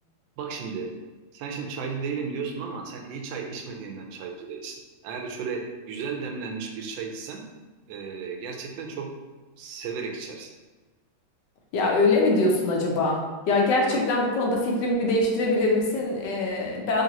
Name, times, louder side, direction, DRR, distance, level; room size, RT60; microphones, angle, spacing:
voice 1, 0.4-0.9 1.3-4.8 5.0-7.4 7.9-9.1 9.6-10.5 13.9-14.0, right 5 dB, 75° right, 2 dB, 1.2 m, -34 dB
voice 2, 11.7-17.0, left 2 dB, 70° left, -1 dB, 1.1 m, -23 dB
3.8 x 3.2 x 2.8 m, 1.2 s
omnidirectional pair, 2.3 m